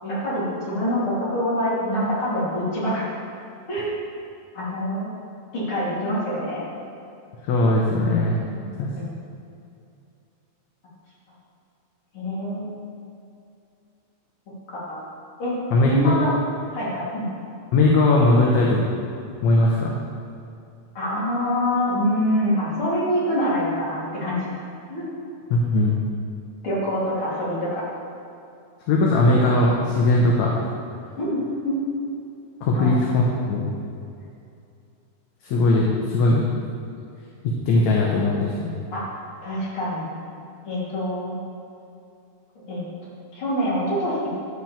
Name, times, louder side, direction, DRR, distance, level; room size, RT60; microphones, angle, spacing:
voice 1, 0.0-3.0 3.7-3.9 4.5-5.1 5.5-6.6 8.5-8.7 9.0-9.1 12.1-12.7 14.7-15.0 15.4-16.3 16.7-17.3 21.0-24.3 24.9-25.1 26.6-27.8 31.2-31.3 31.6-31.7 32.7-32.9 38.9-39.0 39.4-40.2 40.7-41.4 42.7-42.9 43.3-44.3, equal, 45° left, -8 dB, 3.7 m, -25 dB
voice 2, 7.5-8.4 8.8-8.9 15.7-16.2 17.7-18.8 19.4-20.0 25.5-26.0 28.9-30.5 32.6-33.7 35.4-36.4 37.7-38.7, left 2 dB, 70° left, -2 dB, 2.2 m, -19 dB
12.0 x 4.7 x 7.2 m, 2.6 s
omnidirectional pair, 3.5 m